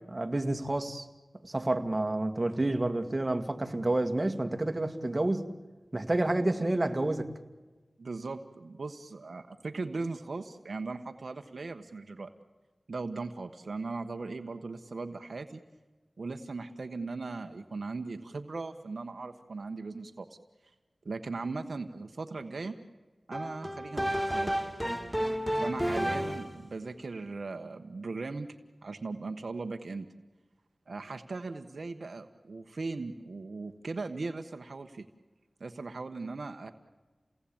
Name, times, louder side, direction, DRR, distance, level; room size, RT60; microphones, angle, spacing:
voice 1, 0.1-1.1 1.4-5.5 5.9-7.3, right 2 dB, 35° right, 6 dB, 2.1 m, -29 dB
voice 2, 8.0-12.3 12.9-15.6 16.2-20.3 21.0-22.7 23.3-24.5 25.6-28.5 28.8-30.1 30.9-35.1 35.6-36.7, right 3 dB, 75° right, 7 dB, 1.2 m, -38 dB
sound 1, 23.3-26.7, equal, 5° left, 1.6 m, -31 dB
29.0 x 18.5 x 8.7 m, 1.3 s
cardioid pair, 45°, 0 cm